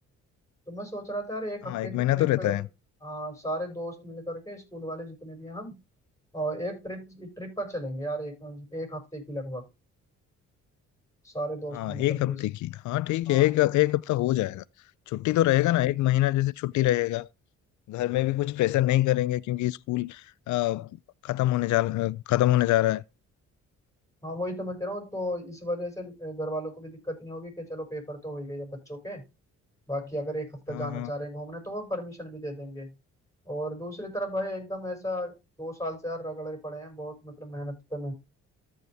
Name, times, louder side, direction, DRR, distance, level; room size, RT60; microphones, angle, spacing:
voice 1, 0.7-2.6 3.0-5.8 6.3-9.6 11.2-12.4 13.3-13.5 24.2-29.2 29.9-32.9 33.4-38.1, equal, 10° left, 6.4 m, -35 dB
voice 2, 1.7-2.7 11.7-14.6 15.1-17.3 17.9-20.9 21.2-23.0 30.7-31.1, left 16 dB, 75° left, 0.5 m, -25 dB
14.0 x 5.4 x 3.4 m
cardioid pair, 90°, 30 cm